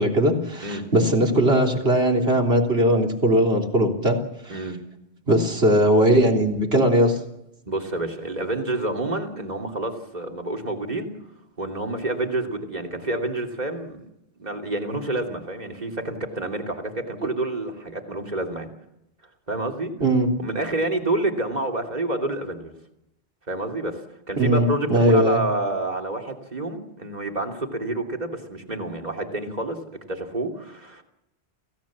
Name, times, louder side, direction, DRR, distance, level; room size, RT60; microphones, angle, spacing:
voice 1, 0.0-4.2 5.3-7.2 20.0-20.3 24.4-25.4, right 1 dB, 65° right, 1 dB, 3.7 m, -19 dB
voice 2, 7.7-11.1 11.6-14.0 14.4-18.7 19.5-19.9 20.4-22.7 23.5-24.0 24.3-29.8 30.1-31.0, right 2 dB, 40° right, 2 dB, 2.9 m, -28 dB
28.5 x 17.0 x 7.4 m, 0.85 s
omnidirectional pair, 1.1 m